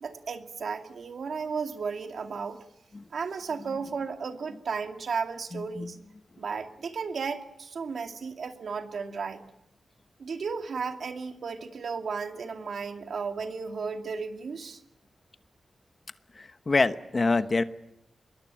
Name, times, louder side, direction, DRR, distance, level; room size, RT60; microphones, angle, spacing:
voice 1, 0.0-2.6 3.1-6.0 6.4-9.4 10.2-14.8, right 5 dB, 70° right, 5 dB, 2.4 m, -34 dB
voice 2, 5.5-5.9 16.4-17.6, left 3 dB, 35° left, 10 dB, 1.1 m, -26 dB
26.0 x 22.5 x 9.1 m, 0.84 s
wide cardioid pair, 120°, 0 cm